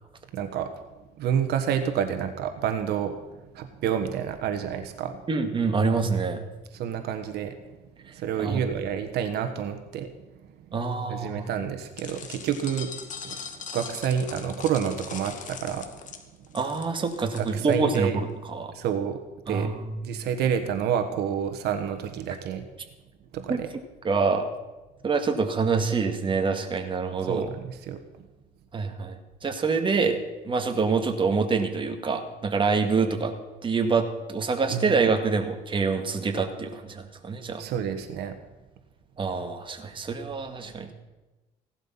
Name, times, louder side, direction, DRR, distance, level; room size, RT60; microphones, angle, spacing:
voice 1, 0.3-0.7 1.2-5.2 6.7-7.6 8.1-10.1 11.1-12.9 13.2-15.9 17.4-18.2 18.7-19.2 19.5-19.7 20.0-22.6 23.3-23.7 27.2-28.0 34.7-34.9 37.6-38.4, right 8 dB, 75° right, 7 dB, 1.4 m, -29 dB
voice 2, 5.3-6.5 8.4-8.6 10.7-11.5 16.5-18.7 19.5-20.0 23.5-23.6 24.0-24.5 25.0-27.5 28.7-30.2 30.4-33.3 33.6-37.6 39.2-40.9, right 4 dB, 30° right, 5 dB, 2.0 m, -26 dB
sound 1, 12.0-18.0, left 6 dB, 50° left, 2.0 m, -40 dB
17.0 x 12.0 x 5.8 m, 1.1 s
cardioid pair, 110°, 17 cm